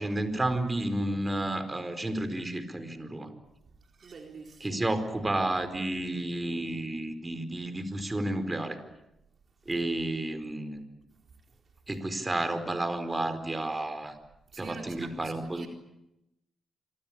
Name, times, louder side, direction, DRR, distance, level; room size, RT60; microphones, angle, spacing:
voice 1, 0.0-3.3 4.6-8.8 9.7-10.8 11.9-14.2 14.6-15.7, right 1 dB, 25° right, 10 dB, 4.6 m, -31 dB
voice 2, 4.0-4.9 14.5-15.7, right 4 dB, 55° right, 3 dB, 4.2 m, -45 dB
27.0 x 24.0 x 8.7 m, 0.89 s
hypercardioid pair, 40°, 0 cm